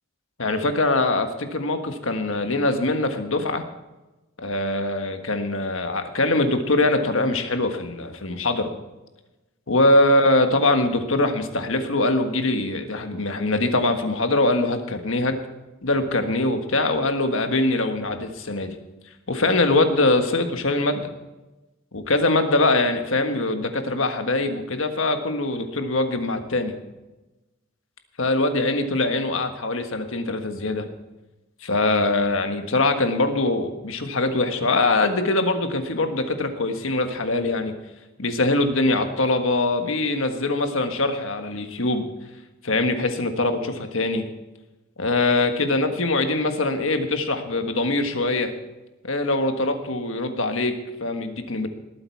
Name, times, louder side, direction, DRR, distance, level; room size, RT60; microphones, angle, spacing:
voice 1, 0.4-3.6 4.4-8.7 9.7-15.4 15.8-18.7 19.3-21.1 21.9-26.8 28.2-30.9 31.6-37.7 38.2-42.1 42.6-44.2 45.0-48.5 49.0-51.7, left 2 dB, 70° left, 6 dB, 1.5 m, -23 dB
19.5 x 9.0 x 4.6 m, 1.1 s
head